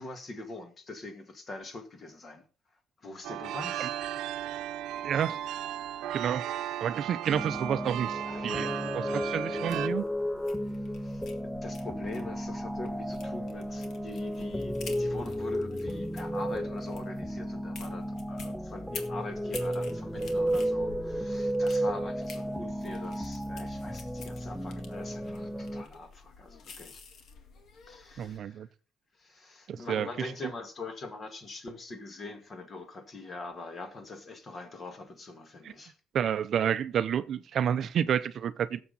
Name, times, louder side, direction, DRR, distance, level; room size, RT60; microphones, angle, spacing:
voice 1, 0.0-2.4 3.0-3.9 6.5-6.7 8.3-8.7 11.0-11.2 11.6-27.0 27.8-28.6 29.2-35.9, left 3 dB, 30° left, 2.0 m, -43 dB
sound 1, 3.2-9.9, right 12 dB, 80° right, 0.8 m, -36 dB
voice 2, 5.0-5.4 6.1-6.4 6.8-10.0 28.2-28.7 29.7-30.5 35.6-35.7 36.1-38.8, right 9 dB, 50° right, 0.6 m, -30 dB
sound 2, 7.3-25.8, equal, ahead, 0.5 m, -33 dB
sound 3, 9.7-28.4, left 5 dB, 55° left, 1.9 m, -50 dB
17.0 x 7.2 x 4.1 m
cardioid pair, 130°, 0 cm